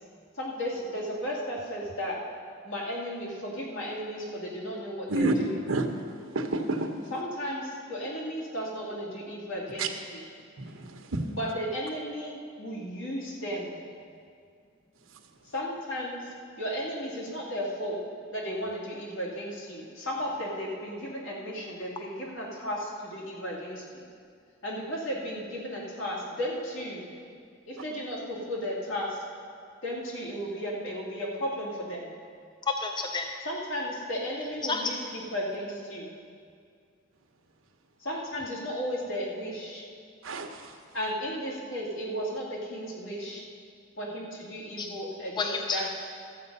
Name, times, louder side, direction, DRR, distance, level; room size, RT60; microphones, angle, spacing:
voice 1, 0.4-2.2 2.6-5.6 7.1-10.2 11.4-13.8 15.5-16.3 16.6-18.0 18.3-23.8 24.6-27.0 27.7-29.2 29.8-32.1 33.4-36.1 38.0-39.8 40.9-43.4 44.0-45.9, equal, 75° left, -4 dB, 2.4 m, -34 dB
voice 2, 6.3-6.9 9.8-9.9 10.6-11.2 40.2-40.7, right 2 dB, 80° right, 5 dB, 0.9 m, -29 dB
voice 3, 32.6-33.3 34.6-35.0 44.8-44.9 45.4-45.9, left 4 dB, 20° left, 4 dB, 0.4 m, -30 dB
13.0 x 7.9 x 5.4 m, 2.2 s
head